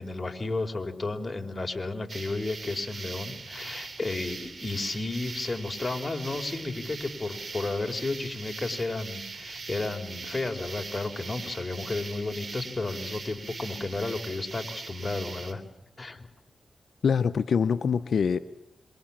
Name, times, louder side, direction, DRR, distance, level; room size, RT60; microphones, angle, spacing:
voice 1, 0.0-15.6 16.0-16.3, left 3 dB, 30° left, 4 dB, 4.6 m, -32 dB
sound 1, 2.1-15.5, right 4 dB, 60° right, 3.4 m, -41 dB
voice 2, 17.0-18.4, left 6 dB, 80° left, 10 dB, 0.9 m, -24 dB
27.0 x 24.5 x 7.4 m, 0.87 s
cardioid pair, 55°, 0 cm